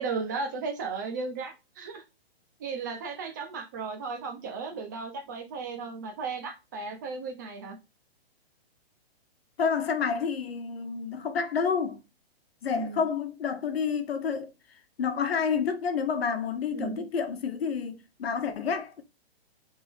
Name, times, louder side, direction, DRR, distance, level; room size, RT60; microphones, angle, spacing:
voice 1, 0.0-2.0 2.6-7.8 12.7-13.1 16.7-17.0, right 4 dB, 20° right, 0.6 m, -35 dB
voice 2, 9.6-12.0 12.6-14.5 15.0-19.0, left 6 dB, 70° left, 1.1 m, -29 dB
3.9 x 3.6 x 3.4 m
hypercardioid pair, 170°, 31 cm